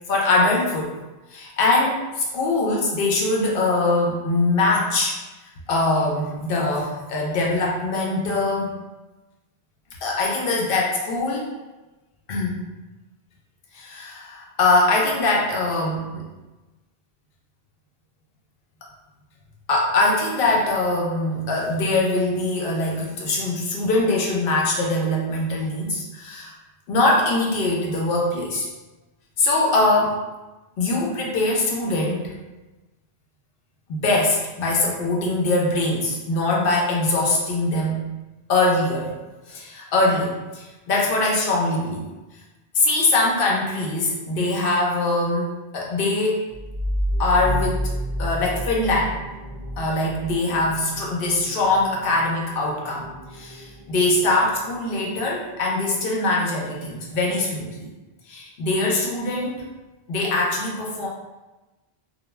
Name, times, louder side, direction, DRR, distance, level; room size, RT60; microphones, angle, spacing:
voice 1, 0.1-1.0 1.3-5.2 5.7-8.7 10.0-11.5 12.3-12.6 13.7-16.3 19.7-26.5 26.9-28.7 29.4-30.2 30.8-32.3 33.9-38.1 38.5-39.2 39.5-42.0 42.7-46.5 47.2-49.2 49.8-57.9 58.3-59.6 60.1-61.1, left 2 dB, 65° left, -2 dB, 0.7 m, -22 dB
sound 1, 46.5-55.8, equal, 75° right, 0.8 m, -31 dB
2.2 x 2.2 x 3.0 m, 1.1 s
omnidirectional pair, 1.1 m